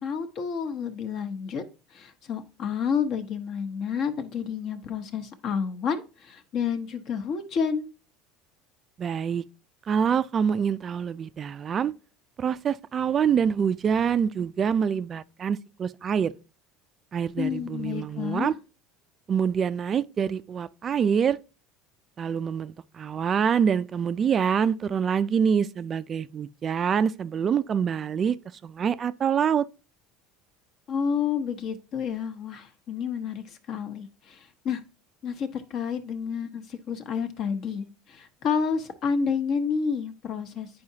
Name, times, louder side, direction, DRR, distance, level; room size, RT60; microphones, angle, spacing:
voice 1, 0.0-1.6 1.9-7.9 17.4-18.5 30.9-34.8 35.2-40.7, left 6 dB, 50° left, 1.0 m, -30 dB
voice 2, 9.0-9.4 9.9-11.9 12.4-16.3 17.1-18.5 19.3-21.4 22.2-28.4 28.6-29.7, right 7 dB, 30° right, 0.3 m, -25 dB
9.5 x 4.8 x 2.8 m
supercardioid pair, 130°, 0 cm